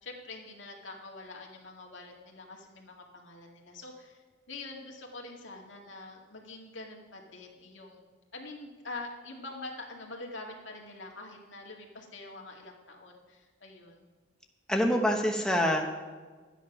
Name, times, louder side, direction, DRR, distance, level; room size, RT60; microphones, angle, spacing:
voice 1, 0.0-4.2 4.5-8.0 8.3-14.0, left 2 dB, 85° left, 0 dB, 2.2 m, -45 dB
voice 2, 14.7-15.9, equal, 5° left, 1 dB, 0.9 m, -26 dB
12.5 x 9.1 x 6.0 m, 1.4 s
head